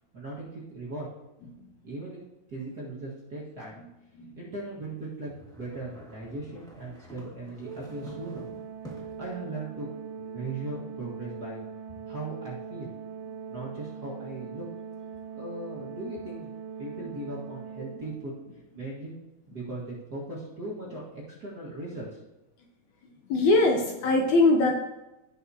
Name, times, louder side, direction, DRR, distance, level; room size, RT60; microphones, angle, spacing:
voice 1, 0.1-1.1 1.8-2.2 2.5-3.8 4.4-8.5 8.9-9.9 10.2-11.6 12.1-12.9 13.5-14.6 15.3-16.5 16.8-18.3 18.7-19.1 19.5-22.2, right 2 dB, 40° right, -6 dB, 1.5 m, -38 dB
sound 1, 5.2-9.3, right 1 dB, 5° left, 0.5 m, -48 dB
Organ, 7.6-18.5, right 6 dB, 80° right, 2.1 m, -41 dB
voice 2, 23.3-24.7, left 2 dB, 70° left, 3 dB, 1.9 m, -21 dB
17.0 x 5.8 x 2.8 m, 0.96 s
omnidirectional pair, 3.8 m